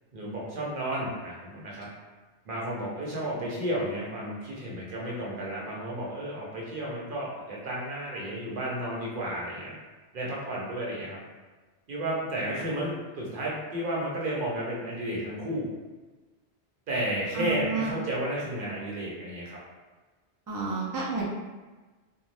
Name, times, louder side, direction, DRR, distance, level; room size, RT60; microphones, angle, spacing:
voice 1, 0.1-1.9 2.4-9.8 10.1-11.2 11.9-15.7 16.9-19.6, right 1 dB, 60° right, -4 dB, 0.9 m, -32 dB
voice 2, 17.3-18.0 20.5-21.3, right 3 dB, 35° right, -4 dB, 0.3 m, -30 dB
2.6 x 2.2 x 3.2 m, 1.3 s
omnidirectional pair, 1.0 m